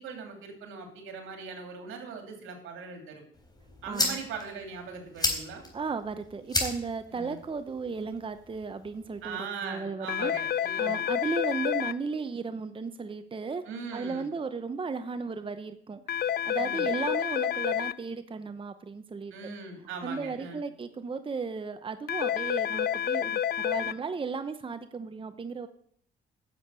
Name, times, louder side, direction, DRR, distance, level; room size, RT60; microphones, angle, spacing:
voice 1, 0.0-3.2 3.8-5.7 7.1-7.4 9.2-11.0 13.7-14.3 16.6-16.9 19.3-20.6, right 5 dB, 85° right, 3 dB, 3.0 m, -40 dB
sound 1, 3.3-9.3, left 2 dB, 20° left, 3.8 m, -35 dB
voice 2, 3.9-4.2 5.7-10.3 10.8-13.6 13.9-16.0 16.5-19.3 20.0-25.7, right 4 dB, 25° right, 10 dB, 0.8 m, -35 dB
sound 2, 10.1-11.9 16.1-17.9 22.1-23.9, left 9 dB, 55° left, 0.5 m, -29 dB
10.5 x 7.3 x 8.2 m, 0.66 s
cardioid pair, 90°, 20 cm